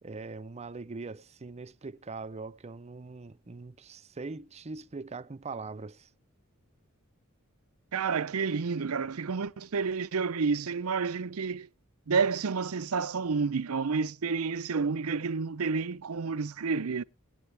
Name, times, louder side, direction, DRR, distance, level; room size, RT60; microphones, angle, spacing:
voice 1, 0.0-6.1, right 3 dB, 30° right, 0.6 m, -41 dB
voice 2, 7.9-11.7 12.1-17.0, right 5 dB, 80° right, 0.6 m, -30 dB
20.0 x 8.9 x 3.3 m
head